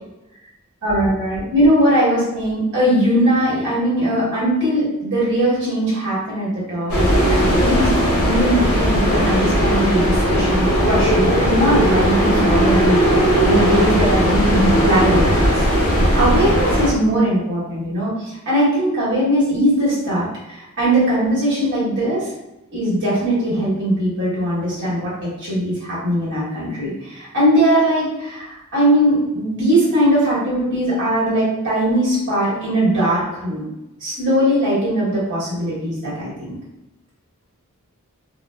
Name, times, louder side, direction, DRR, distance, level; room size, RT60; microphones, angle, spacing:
voice 1, 0.8-6.9 7.3-7.9 8.2-13.0 13.4-15.6 16.1-22.3 22.7-33.6 34.0-36.3, right 1 dB, 60° right, -8 dB, 1.4 m, -20 dB
sound 1, 6.9-16.9, equal, 85° left, 0.7 m, -17 dB
3.8 x 2.0 x 2.2 m, 0.92 s
head